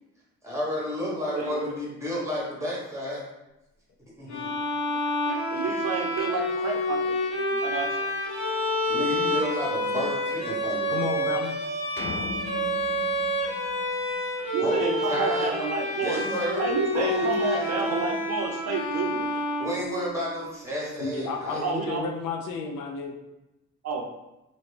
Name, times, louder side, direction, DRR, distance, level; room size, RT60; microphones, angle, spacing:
voice 1, 0.4-3.2 4.2-4.5 8.9-10.9 14.5-15.5 16.0-16.6 16.9-18.1 19.6-21.8, equal, 10° right, -5 dB, 1.4 m, -31 dB
voice 2, 1.3-1.7 5.5-7.2 7.6-8.1 14.5-16.2 16.6-19.3 21.6-22.0 23.8-24.1, right 5 dB, 60° right, 1 dB, 0.6 m, -30 dB
Bowed string instrument, 4.3-20.3, left 1 dB, 65° left, 1.3 m, -28 dB
voice 3, 4.8-5.4 7.5-7.6 10.9-11.5 21.0-23.1, left 4 dB, 90° left, 3 dB, 0.6 m, -33 dB
sound 1, 12.0-14.4, left 4 dB, 40° left, 0.4 m, -38 dB
3.1 x 2.6 x 3.2 m, 0.94 s
cardioid pair, 90°, 30 cm